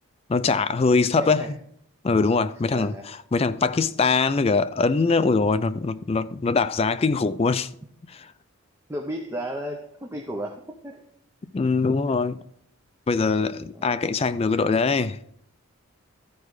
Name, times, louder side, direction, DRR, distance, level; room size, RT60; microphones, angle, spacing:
voice 1, 0.3-1.4 2.0-7.7 11.5-12.4 13.1-15.2, left 4 dB, 25° left, 0.3 m, -22 dB
voice 2, 1.2-1.5 2.7-3.1 8.9-11.0 13.8-14.3, equal, 10° right, 0.7 m, -34 dB
13.5 x 4.7 x 4.8 m
head